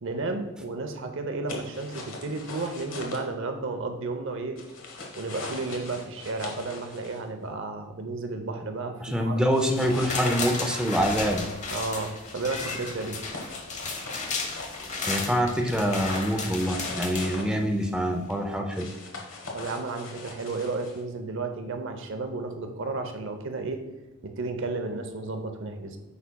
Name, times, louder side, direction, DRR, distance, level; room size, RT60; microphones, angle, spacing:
voice 1, 0.0-4.6 5.2-9.5 11.7-13.2 19.5-23.8 24.2-26.0, right 3 dB, 65° right, 6 dB, 0.7 m, -33 dB
sound 1, 1.5-3.2 4.6-7.2 9.5-10.3 12.2-15.1 16.4-17.5 18.7-21.0, left 3 dB, 65° left, 1.3 m, -41 dB
voice 2, 9.0-11.5 15.1-18.9, equal, 5° right, 2 dB, 0.5 m, -25 dB
sound 2, 9.8-17.9 18.3-18.4, left 4 dB, 35° left, 0.8 m, -34 dB
8.3 x 5.7 x 2.3 m, 1.2 s
head